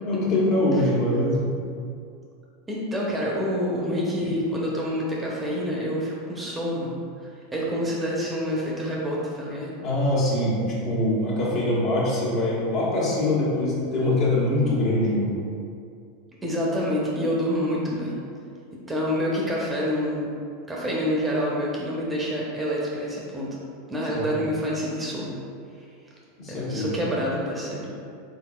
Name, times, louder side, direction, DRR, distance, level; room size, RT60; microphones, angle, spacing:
voice 1, 0.0-1.5 9.8-15.3 24.1-24.5 26.4-26.9, left 1 dB, 45° left, -6 dB, 1.3 m, -23 dB
voice 2, 2.7-9.7 16.4-18.2 18.9-20.2 20.7-23.5 23.9-25.4 26.5-27.9, equal, 15° right, -4 dB, 0.7 m, -27 dB
4.1 x 3.9 x 2.3 m, 2.4 s
figure-of-eight pair, 85°, 0 cm